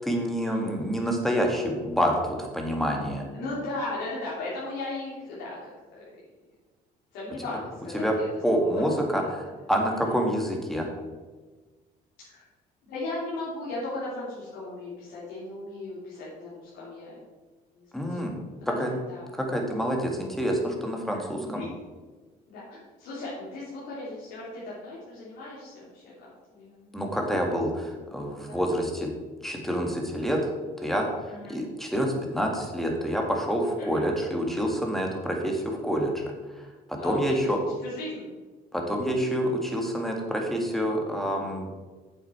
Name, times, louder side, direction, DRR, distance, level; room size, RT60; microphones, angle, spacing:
voice 1, 0.1-3.2 7.9-8.1 8.4-10.9 17.9-18.4 18.8-18.9 19.3-21.6 26.9-29.1 29.4-30.5 30.8-31.1 31.5-36.2 36.6-37.6 38.7-41.7, equal, ahead, 1 dB, 1.9 m, -27 dB
voice 2, 3.3-6.0 7.1-8.7 9.1-9.3 12.2-12.4 12.8-17.2 17.8-18.2 18.7-18.8 19.1-19.3 21.4-21.7 22.5-26.0 26.5-27.0 28.3-28.6 31.3-31.6 33.8-34.0 37.0-37.5 37.8-38.3, left 2 dB, 85° left, -8 dB, 3.1 m, -37 dB
8.8 x 7.5 x 4.4 m, 1.3 s
cardioid pair, 110°, 17 cm